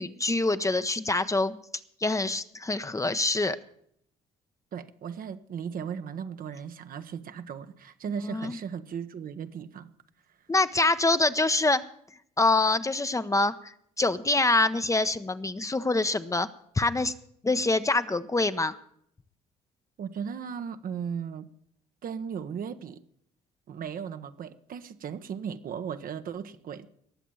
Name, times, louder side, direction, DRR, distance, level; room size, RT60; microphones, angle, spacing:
voice 1, 0.0-1.6 2.0-3.6 8.3-8.6 10.5-11.8 12.4-13.7 14.0-16.5 16.8-17.1 17.4-18.8, left 2 dB, 20° left, 11 dB, 0.8 m, -25 dB
voice 2, 4.7-9.9 20.0-21.5 22.0-23.0 23.7-26.9, right 7 dB, 55° right, 9 dB, 1.0 m, -36 dB
19.5 x 7.3 x 7.1 m, 0.68 s
supercardioid pair, 65°, 17 cm